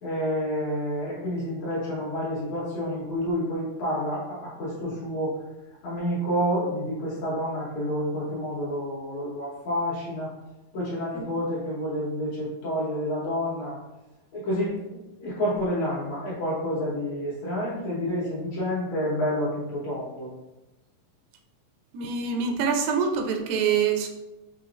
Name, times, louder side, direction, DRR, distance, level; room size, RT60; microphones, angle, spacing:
voice 1, 0.0-5.4 5.8-10.3 10.7-13.8 14.3-20.3, equal, 60° left, -7 dB, 2.2 m, -29 dB
voice 2, 21.9-24.1, right 6 dB, 85° right, 5 dB, 2.3 m, -25 dB
5.9 x 2.7 x 2.5 m, 1.0 s
omnidirectional pair, 3.9 m